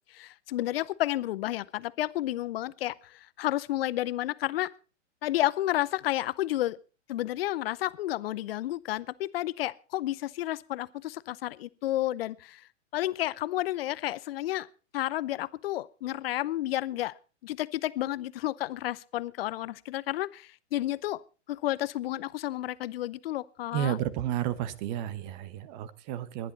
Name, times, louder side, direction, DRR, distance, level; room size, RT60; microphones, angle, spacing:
voice 1, 0.1-4.7 5.2-6.8 7.1-12.6 12.9-14.7 14.9-17.2 17.4-21.2 21.5-24.0, left 14 dB, 50° left, 19 dB, 0.8 m, -31 dB
voice 2, 23.7-26.5, right 11 dB, 35° right, 17 dB, 1.2 m, -32 dB
19.5 x 11.0 x 4.1 m, 0.35 s
hypercardioid pair, 120°, 37 cm